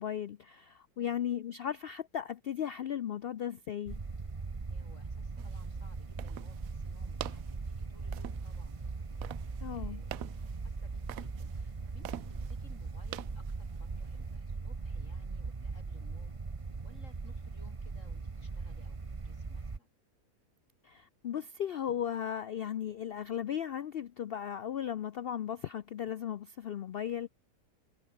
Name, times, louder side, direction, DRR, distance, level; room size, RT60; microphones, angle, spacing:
voice 1, 0.0-4.0 9.6-10.0 20.8-27.3, left 9 dB, 80° left, 0.5 m, -36 dB
voice 2, 1.0-1.3 4.7-8.8 9.7-16.3 16.8-19.0 19.2-19.9, left 1 dB, 50° left, 6.9 m, -61 dB
sound 1, 3.9-19.8, right 4 dB, 25° right, 1.0 m, -40 dB
sound 2, 5.4-14.3, right 14 dB, 70° right, 1.0 m, -48 dB
omnidirectional pair, 1.6 m